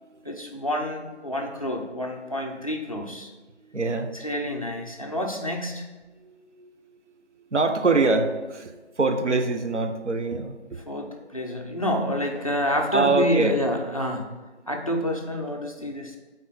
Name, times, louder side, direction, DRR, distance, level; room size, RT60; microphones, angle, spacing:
voice 1, 0.2-3.3 4.2-5.8 10.9-14.3 14.7-16.2, equal, 30° left, 1 dB, 0.6 m, -28 dB
voice 2, 3.7-4.1 6.2-7.0 7.5-10.6 12.9-13.6, right 3 dB, 85° right, 6 dB, 0.9 m, -24 dB
8.8 x 4.1 x 4.0 m, 1.3 s
figure-of-eight pair, 165°, 34 cm